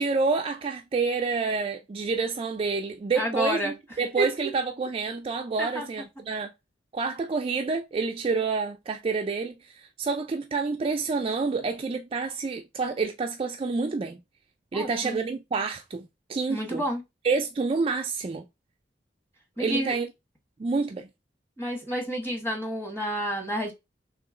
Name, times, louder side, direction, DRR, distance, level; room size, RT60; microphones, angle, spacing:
voice 1, 0.0-6.5 6.9-9.6 10.0-14.2 14.7-16.8 17.2-18.4 19.6-20.1 20.6-21.1, right 4 dB, 30° right, 0.3 m, -28 dB
voice 2, 3.1-3.7 4.2-4.3 5.6-5.8 14.7-15.2 16.5-17.0 19.6-19.9 21.6-23.7, right 1 dB, 15° left, 1.2 m, -29 dB
3.1 x 2.9 x 3.7 m
head